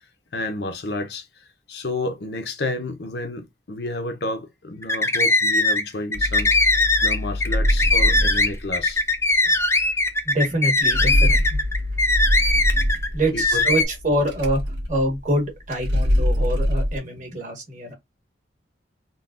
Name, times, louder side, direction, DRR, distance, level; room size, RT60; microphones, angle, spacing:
voice 1, 0.3-1.3 1.7-6.5 7.0-9.0 9.4-9.5 13.3-13.7, left 2 dB, 65° left, 0.7 m, -30 dB
sound 1, 4.8-5.8 6.1-13.1 13.4-13.8, left 2 dB, 15° left, 0.5 m, -20 dB
sound 2, 6.1-17.0, equal, 90° right, 1.4 m, -24 dB
voice 2, 10.2-11.4 13.1-14.6 14.9-17.9, right 1 dB, 45° right, 1.6 m, -25 dB
3.8 x 2.3 x 2.4 m
head